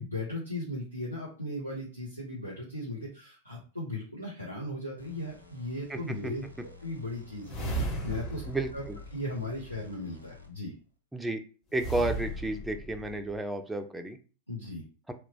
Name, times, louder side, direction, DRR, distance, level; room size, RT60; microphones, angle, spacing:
voice 1, 0.0-6.4 6.8-8.4 8.7-8.8 9.1-10.7 14.5-14.8, left 1 dB, 85° left, -5 dB, 0.7 m, -37 dB
sound 1, 5.0-10.7, left 3 dB, 85° right, 0.5 m, -51 dB
voice 2, 5.9-6.3 8.5-9.0 11.1-11.4 11.7-14.2, right 2 dB, 5° right, 6 dB, 0.3 m, -32 dB
sound 2, 7.4-9.9 11.7-13.4, right 2 dB, 30° left, 0.9 m, -36 dB
2.8 x 2.1 x 2.7 m, 0.37 s
figure-of-eight pair, 90°, 0 cm